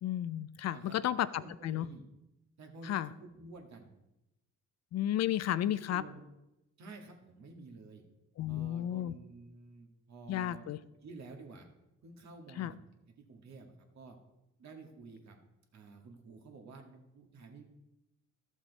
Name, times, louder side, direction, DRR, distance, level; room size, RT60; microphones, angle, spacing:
voice 1, 0.0-1.9 2.8-3.1 4.9-6.0 8.4-9.1 10.3-10.8 12.6-12.7, left 12 dB, 60° left, 16 dB, 0.5 m, -33 dB
voice 2, 1.3-2.0 2.6-3.9 5.7-6.3 6.8-8.0 8.5-10.6 11.0-11.7 12.0-12.9 13.3-14.2 14.6-15.4 15.7-17.6, right 3 dB, 65° right, 3 dB, 1.8 m, -51 dB
12.5 x 7.2 x 4.1 m, 0.92 s
cardioid pair, 90°, 30 cm